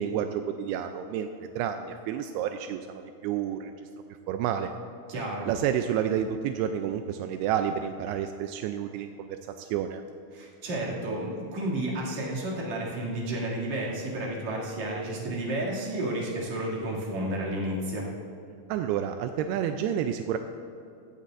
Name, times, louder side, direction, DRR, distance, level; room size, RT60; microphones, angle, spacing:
voice 1, 0.0-3.7 4.3-4.7 5.4-10.0 18.7-20.4, right 9 dB, 85° right, 6 dB, 2.5 m, -30 dB
voice 2, 5.1-5.5 10.3-18.1, right 1 dB, 50° right, -5 dB, 3.5 m, -31 dB
15.5 x 15.5 x 2.5 m, 2.7 s
omnidirectional pair, 4.6 m